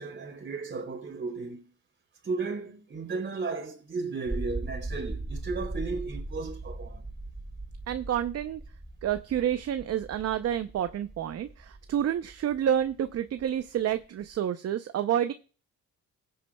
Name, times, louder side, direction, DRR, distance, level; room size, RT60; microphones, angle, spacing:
voice 1, 0.0-1.7 2.2-7.0, right 4 dB, 40° right, 3.3 m, -35 dB
sound 1, 4.3-14.4, right 2 dB, 10° right, 0.4 m, -39 dB
voice 2, 7.9-8.6 9.0-15.3, right 10 dB, 55° right, 0.6 m, -29 dB
18.5 x 8.6 x 2.3 m
cardioid pair, 90°, 30 cm